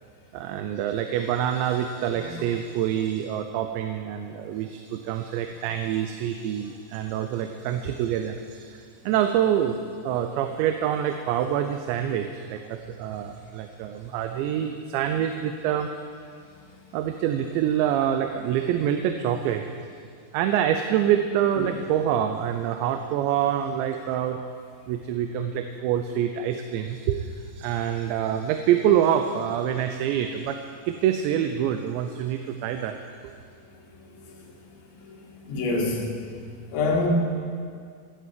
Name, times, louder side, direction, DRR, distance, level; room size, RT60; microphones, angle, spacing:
voice 1, 0.3-15.9 16.9-19.9 20.3-24.5 24.9-30.6 30.9-33.0, right 10 dB, 90° right, 6 dB, 3.0 m, -26 dB
voice 2, 33.9-34.5 34.8-36.1 36.7-37.1, left 3 dB, 90° left, -2 dB, 4.5 m, -28 dB
16.5 x 9.4 x 7.5 m, 2.2 s
omnidirectional pair, 5.0 m